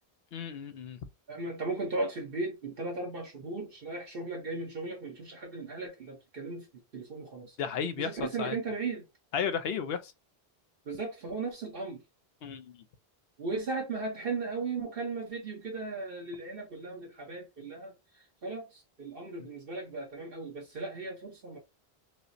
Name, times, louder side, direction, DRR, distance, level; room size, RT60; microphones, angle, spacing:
voice 1, 0.3-1.0 7.6-8.6 9.3-10.1 12.4-12.8 19.4-19.5, left 7 dB, 80° left, 0.8 m, -34 dB
voice 2, 1.3-6.7 6.9-7.6 8.0-9.0 10.9-12.0 13.4-17.9 18.4-21.6, right 3 dB, 65° right, 1.1 m, -36 dB
4.8 x 2.0 x 2.6 m
omnidirectional pair, 1.0 m